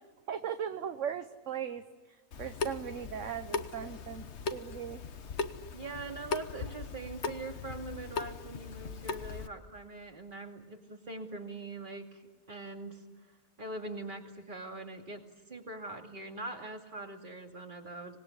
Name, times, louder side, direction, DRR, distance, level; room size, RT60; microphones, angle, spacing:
voice 1, 0.3-5.0, right 8 dB, 55° right, 9 dB, 1.3 m, -38 dB
Water tap faucet / Sink (filling or washing) / Drip, 2.3-9.5, left 4 dB, 50° left, 1.3 m, -39 dB
voice 2, 5.7-12.2 12.5-13.0 13.6-18.2, right 2 dB, 35° right, 4 dB, 2.5 m, -42 dB
26.0 x 20.0 x 9.9 m, 1.4 s
omnidirectional pair, 1.6 m